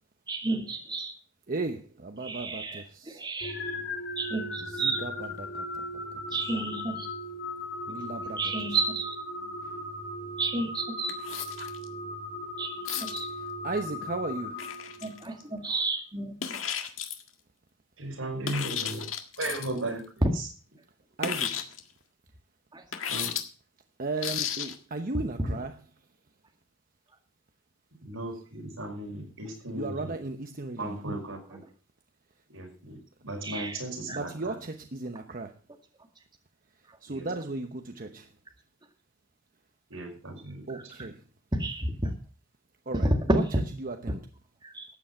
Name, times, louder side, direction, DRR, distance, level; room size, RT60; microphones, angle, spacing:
voice 1, 0.3-1.1 2.2-2.8 3.2-3.7 4.2-5.0 6.3-7.1 8.4-9.1 10.4-11.1 12.6-13.3 15.0-16.3 20.2-20.3 25.1-25.6 31.5-31.6 33.4-33.8 34.1-34.2 40.7-41.1 41.5-42.1 42.9-43.6 44.1-44.2 44.6-44.9, right 2 dB, 20° right, 2.0 m, -30 dB
voice 2, 1.5-3.2 4.7-6.0 7.9-8.5 13.6-14.6 21.2-21.6 24.0-25.8 29.7-31.0 34.1-35.5 37.0-38.3 40.7-41.2 42.9-43.4 43.8-44.2, right 3 dB, 45° right, 1.0 m, -35 dB
sound 1, 3.4-15.4, left 1 dB, 55° left, 4.5 m, -38 dB
sound 2, 11.1-11.9 12.9-13.2 14.6-15.4 16.4-17.3 18.4-19.8 21.2-21.8 22.9-23.4 24.2-24.8, left 8 dB, 80° left, 1.7 m, -33 dB
voice 3, 18.0-20.5 23.1-23.4 27.9-30.2 30.8-31.6 32.5-34.6 37.1-37.3 39.9-40.9, right 1 dB, 80° right, 5.8 m, -37 dB
13.5 x 9.2 x 5.6 m
head